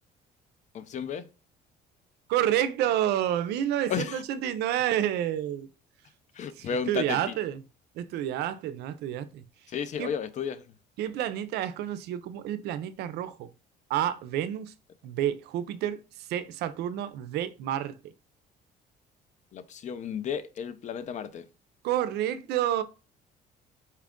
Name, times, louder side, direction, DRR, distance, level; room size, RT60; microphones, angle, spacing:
voice 1, 0.7-1.3 3.9-4.2 6.4-7.2 9.7-10.6 19.5-21.4, left 7 dB, 45° left, 0.5 m, -33 dB
voice 2, 2.3-5.7 6.5-7.7 7.9-9.4 10.0-10.1 11.0-13.5 13.9-14.7 15.0-18.1 21.8-22.8, right 11 dB, 80° right, 0.5 m, -29 dB
4.3 x 2.4 x 3.5 m
cardioid pair, 110°, 17 cm